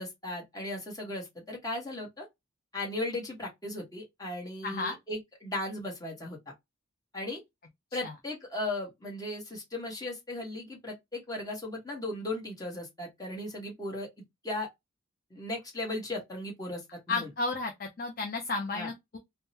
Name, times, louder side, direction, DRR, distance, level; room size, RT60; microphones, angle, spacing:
voice 1, 0.0-2.2 2.7-6.4 7.1-7.4 7.9-14.1 14.4-14.7 15.3-16.8 17.1-17.3 18.7-18.9, left 1 dB, 15° left, 1.2 m, -36 dB
voice 2, 4.6-5.0 7.9-8.1 17.1-19.2, left 3 dB, 45° left, 0.5 m, -33 dB
3.6 x 2.2 x 2.7 m
head